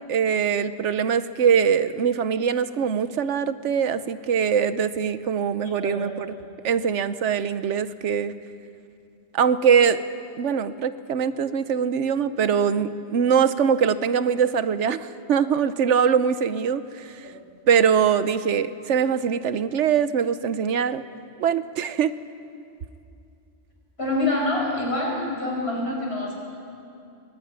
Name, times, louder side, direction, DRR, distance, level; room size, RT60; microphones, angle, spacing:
voice 1, 0.1-6.3 6.6-8.3 9.3-10.0 10.4-17.1 17.7-21.0 21.4-22.2, right 7 dB, 85° right, 13 dB, 1.1 m, -22 dB
voice 2, 5.8-6.2 24.0-26.4, left 2 dB, 60° left, -2 dB, 6.5 m, -26 dB
23.0 x 19.5 x 9.5 m, 2.6 s
omnidirectional pair, 1.2 m